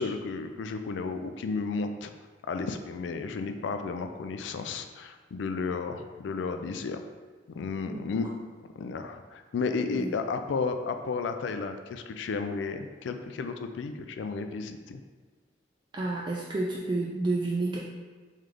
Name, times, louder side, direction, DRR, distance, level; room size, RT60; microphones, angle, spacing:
voice 1, 0.0-2.1 2.5-7.0 7.5-8.3 8.8-15.0, left 4 dB, 85° left, 7 dB, 0.3 m, -33 dB
voice 2, 15.9-17.8, right 2 dB, 25° right, -3 dB, 0.3 m, -30 dB
3.3 x 3.2 x 3.7 m, 1.4 s
head